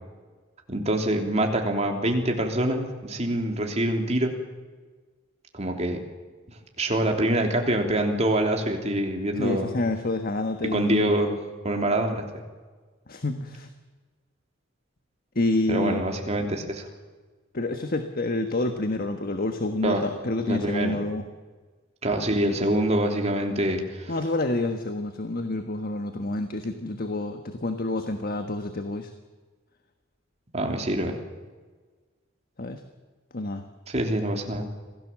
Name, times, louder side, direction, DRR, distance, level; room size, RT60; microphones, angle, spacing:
voice 1, 0.7-4.3 5.5-6.0 6.8-9.7 10.6-11.4 11.6-12.2 15.7-16.9 19.8-20.1 20.5-21.0 22.0-24.1 30.5-31.2 33.9-34.7, right 1 dB, 35° right, 3 dB, 3.3 m, -25 dB
voice 2, 9.3-11.1 13.1-13.7 15.3-16.0 17.5-21.2 24.1-29.1 32.6-32.8 33.3-33.6, left 2 dB, 50° left, 7 dB, 1.4 m, -28 dB
26.0 x 17.5 x 7.5 m, 1.4 s
head